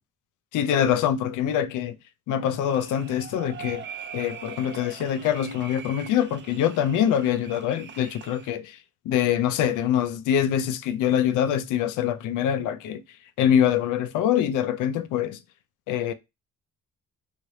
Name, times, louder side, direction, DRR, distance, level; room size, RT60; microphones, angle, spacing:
voice 1, 0.5-2.0 2.3-3.8 4.1-8.8 9.1-13.0 13.4-15.4 15.9-16.1, left 9 dB, 85° left, 0.5 m, -24 dB
sound 1, 2.6-8.5, right 7 dB, 40° right, 0.5 m, -42 dB
3.1 x 2.6 x 3.1 m
cardioid pair, 90°, 30 cm